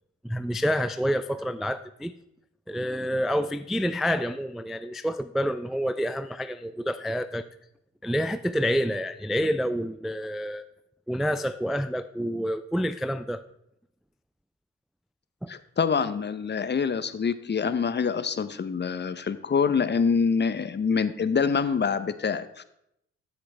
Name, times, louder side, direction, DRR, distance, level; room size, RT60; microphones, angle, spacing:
voice 1, 0.2-2.1 2.7-7.4 8.0-10.7 11.1-13.4 15.4-15.5, equal, ahead, 12 dB, 0.3 m, -28 dB
voice 2, 15.5-22.6, left 5 dB, 30° left, 13 dB, 0.7 m, -26 dB
13.0 x 5.9 x 3.3 m, 0.77 s
hypercardioid pair, 45°, 33 cm